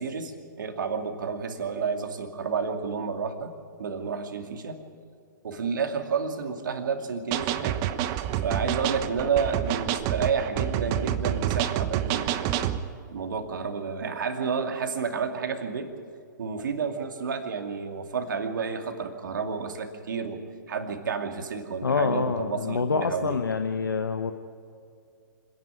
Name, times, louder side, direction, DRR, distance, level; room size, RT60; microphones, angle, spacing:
voice 1, 0.0-3.5 3.8-4.8 5.4-7.8 8.4-12.6 13.1-15.9 16.4-20.4 20.7-23.4, right 5 dB, 70° right, 5 dB, 2.5 m, -30 dB
sound 1, 7.3-12.8, right 11 dB, 35° right, 1.1 m, -28 dB
voice 2, 21.8-24.3, left 5 dB, 85° left, 7 dB, 1.0 m, -26 dB
26.0 x 11.0 x 9.7 m, 2.4 s
hypercardioid pair, 120°, 11 cm